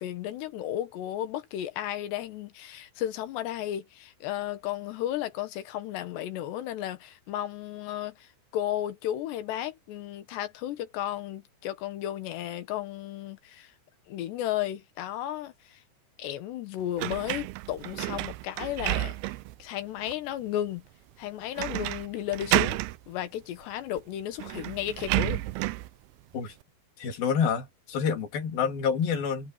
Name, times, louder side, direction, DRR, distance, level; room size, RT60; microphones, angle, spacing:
voice 1, 0.0-13.7 14.1-15.8 16.2-19.1 19.6-20.8 21.2-22.8 23.1-25.4, left 12 dB, 80° left, 3.5 m, -34 dB
sound 1, 17.0-19.6 20.1-20.2 21.6-22.1 22.3-23.0 24.0-24.1 24.4-25.9, right 19 dB, 80° right, 2.4 m, -30 dB
voice 2, 27.0-29.5, left 6 dB, 60° left, 4.6 m, -28 dB
omnidirectional pair, 5.0 m